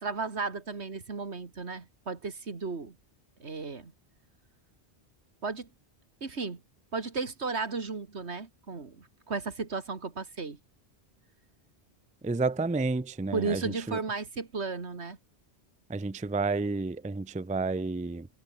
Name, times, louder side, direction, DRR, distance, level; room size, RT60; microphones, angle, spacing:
voice 1, 0.0-3.0 3.4-3.9 5.4-5.7 6.2-6.6 6.9-10.6 13.3-15.2, right 4 dB, 80° right, 2.5 m, -34 dB
voice 2, 12.2-14.0 15.9-18.3, right 3 dB, 10° right, 0.4 m, -30 dB
omnidirectional pair, 1.1 m